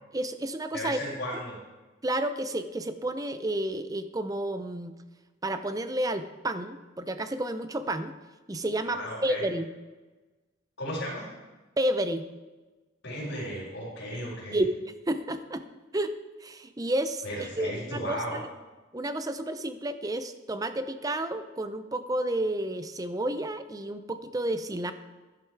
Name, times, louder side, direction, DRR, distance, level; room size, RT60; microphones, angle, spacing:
voice 1, 0.1-1.0 2.0-4.9 5.4-8.1 8.5-9.7 11.8-12.3 14.5-14.7 15.1-15.7 15.9-16.1 16.4-18.4 18.9-24.9, right 1 dB, 20° right, 10 dB, 0.6 m, -31 dB
voice 2, 0.7-1.6 8.8-9.4 10.8-11.3 13.0-14.6 17.2-18.4, equal, 65° left, -9 dB, 4.1 m, -35 dB
12.0 x 11.0 x 4.7 m, 1.2 s
head